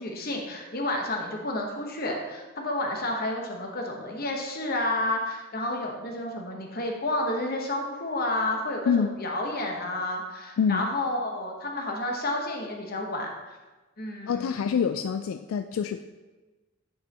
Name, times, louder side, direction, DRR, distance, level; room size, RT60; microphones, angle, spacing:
voice 1, 0.0-13.6 14.0-14.6, left 1 dB, 45° left, 1 dB, 1.1 m, -30 dB
voice 2, 10.6-10.9 14.3-16.0, left 6 dB, 80° left, 8 dB, 0.3 m, -26 dB
9.1 x 5.3 x 2.9 m, 1.2 s
head